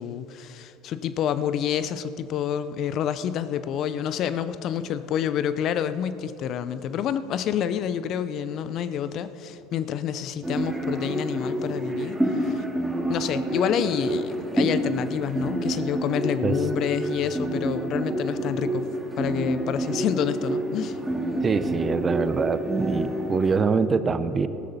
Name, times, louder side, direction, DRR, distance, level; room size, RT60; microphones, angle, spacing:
voice 1, 0.0-12.6 13.1-18.9 19.2-21.0, left 9 dB, 55° left, 13 dB, 0.6 m, -28 dB
sound 1, 10.4-23.6, right 1 dB, 5° right, 2.0 m, -28 dB
voice 2, 21.4-24.5, right 5 dB, 30° right, 12 dB, 0.7 m, -24 dB
14.5 x 12.5 x 4.2 m, 3.0 s
hypercardioid pair, 75°, 0 cm